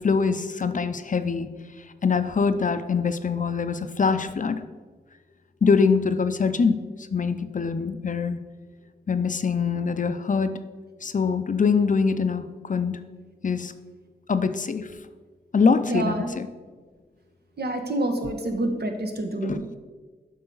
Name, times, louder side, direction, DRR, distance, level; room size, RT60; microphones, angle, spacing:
voice 1, 0.0-1.5 2.0-4.6 5.6-6.8 7.1-8.4 9.1-10.6 11.0-13.0 13.4-13.7 14.3-14.9 15.5-16.5 19.4-19.6, left 5 dB, 50° left, 10 dB, 0.5 m, -23 dB
voice 2, 15.9-16.3 17.6-19.8, right 1 dB, 70° right, 4 dB, 1.0 m, -27 dB
7.9 x 5.5 x 3.9 m, 1.4 s
wide cardioid pair, 65°, 17 cm